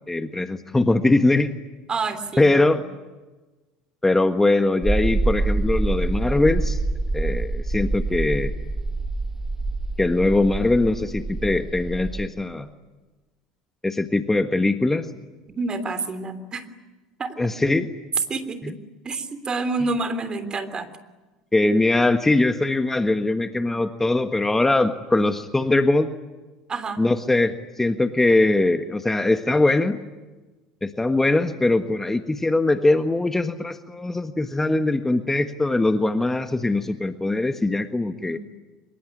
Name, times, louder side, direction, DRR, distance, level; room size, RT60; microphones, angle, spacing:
voice 1, 0.1-1.5 2.4-2.8 4.0-6.8 7.1-8.5 10.0-12.7 13.8-15.1 17.4-17.9 18.6-18.7 21.5-26.1 27.0-30.0 30.8-38.4, left 2 dB, 10° left, 8 dB, 1.5 m, -21 dB
voice 2, 1.9-2.7 15.5-16.7 17.2-17.3 18.3-18.8 19.0-20.9 26.7-27.0 38.2-38.6, right 3 dB, 30° right, 11 dB, 3.2 m, -28 dB
sound 1, 4.8-12.3, right 3 dB, 15° right, 1.8 m, -26 dB
25.5 x 23.0 x 9.8 m, 1.2 s
hypercardioid pair, 75°, 3 cm